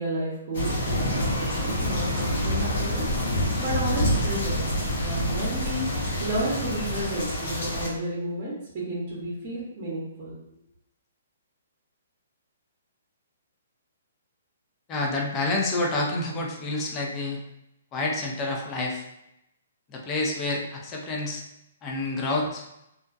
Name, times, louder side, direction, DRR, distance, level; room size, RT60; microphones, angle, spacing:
voice 1, 0.0-3.0 3.3-4.6 5.0-10.4, right 1 dB, 40° right, -6 dB, 0.8 m, -32 dB
sound 1, 0.5-7.9, equal, 65° left, 0.9 m, -27 dB
voice 2, 14.9-17.4 17.9-19.0 19.9-21.4 21.8-22.6, left 2 dB, 25° left, -1 dB, 0.5 m, -28 dB
2.4 x 2.1 x 2.5 m, 0.84 s
hypercardioid pair, 140°, 0 cm